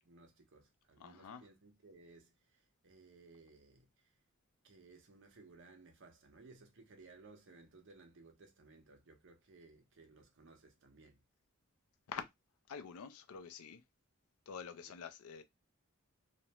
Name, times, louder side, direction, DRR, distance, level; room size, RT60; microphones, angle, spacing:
voice 1, 0.0-2.3 2.8-3.9 4.6-11.2, right 3 dB, 60° right, 0.7 m, -60 dB
voice 2, 1.0-1.5 12.1-12.2 12.7-13.8 14.5-15.4, left 6 dB, 85° left, 0.5 m, -47 dB
2.4 x 2.1 x 2.9 m
head